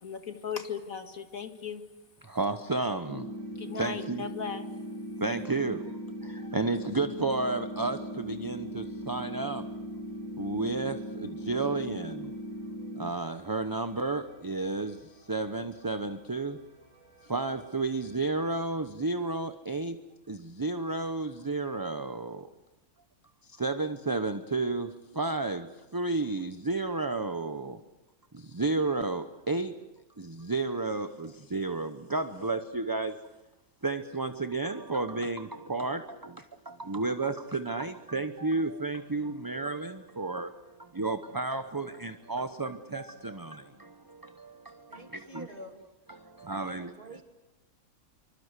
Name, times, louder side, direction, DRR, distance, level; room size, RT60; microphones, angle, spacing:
voice 1, 0.0-1.8 3.6-4.7, left 7 dB, 75° left, 7 dB, 2.4 m, -37 dB
voice 2, 2.2-3.3 3.7-4.3 5.2-9.7 10.4-12.3 12.9-16.6 17.2-20.0 20.3-22.5 23.4-27.8 28.3-29.7 30.2-33.2 33.8-45.5 46.1-46.9, right 3 dB, 20° right, 9 dB, 0.8 m, -32 dB
sound 1, 3.1-13.1, equal, 75° right, 2.4 m, -39 dB
sound 2, 3.3-18.7, right 1 dB, 55° left, 6.3 m, -61 dB
voice 3, 44.9-45.8 46.6-47.3, equal, 35° right, 4 dB, 3.2 m, -47 dB
26.5 x 25.0 x 8.2 m, 1.1 s
omnidirectional pair, 1.5 m